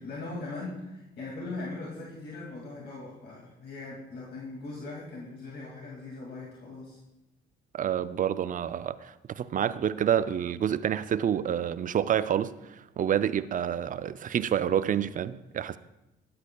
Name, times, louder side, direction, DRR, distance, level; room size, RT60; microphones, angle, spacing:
voice 1, 0.0-7.0, left 3 dB, 55° left, 2.3 m, -40 dB
voice 2, 7.7-15.8, right 9 dB, 45° right, 0.4 m, -28 dB
13.0 x 10.5 x 2.3 m
cardioid pair, 90°, 20 cm